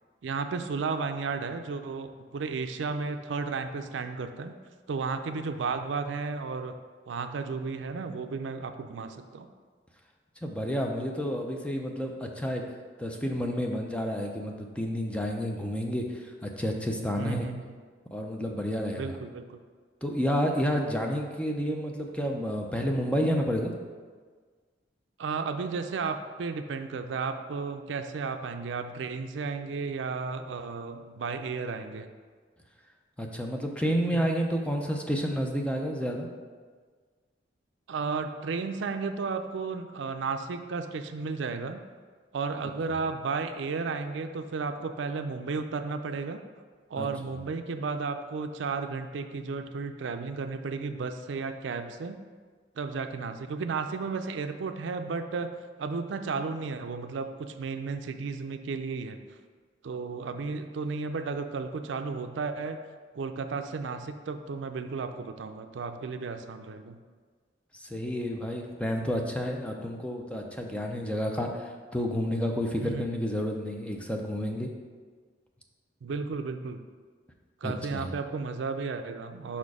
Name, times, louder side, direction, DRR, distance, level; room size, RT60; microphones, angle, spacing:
voice 1, 0.2-4.5 4.9-6.7 7.1-9.5 17.2-17.7 19.0-19.6 25.2-32.1 34.1-34.3 37.9-41.8 42.3-46.4 46.9-52.2 52.8-55.5 55.8-59.2 59.8-62.8 63.1-67.0 72.8-73.1 76.0-76.8 77.6-79.6, right 4 dB, 75° right, 8 dB, 0.4 m, -33 dB
voice 2, 10.4-12.6 13.0-17.5 18.1-19.2 20.0-23.7 33.2-36.3 47.0-47.1 67.7-74.7 77.6-78.1, equal, 5° left, 2 dB, 0.5 m, -30 dB
5.7 x 4.3 x 4.8 m, 1.5 s
head